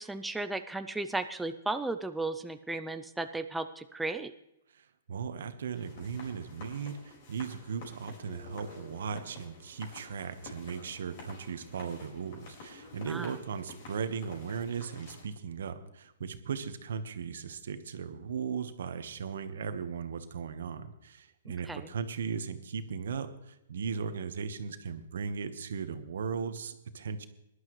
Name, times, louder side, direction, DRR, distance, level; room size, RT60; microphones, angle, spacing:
voice 1, 0.0-4.3 13.1-13.3 21.7-21.9, right 2 dB, 5° right, 8 dB, 0.4 m, -35 dB
voice 2, 4.7-27.3, right 6 dB, 80° right, 10 dB, 1.2 m, -37 dB
sound 1, 5.7-15.2, left 3 dB, 45° left, 4.8 m, -50 dB
19.0 x 11.5 x 3.2 m, 0.88 s
hypercardioid pair, 155°, 0 cm